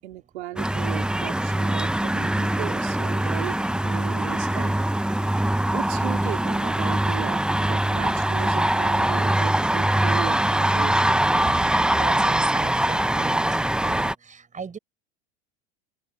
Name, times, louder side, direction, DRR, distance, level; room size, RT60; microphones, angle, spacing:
voice 1, 0.0-4.9 5.7-11.2, right 15 dB, 80° right, 3.6 m, -36 dB
sound 1, 0.6-14.1, right 1 dB, 5° right, 0.8 m, -23 dB
voice 2, 11.6-13.4 13.8-14.8, right 5 dB, 25° right, 6.1 m, -37 dB
hypercardioid pair, 100°, 33 cm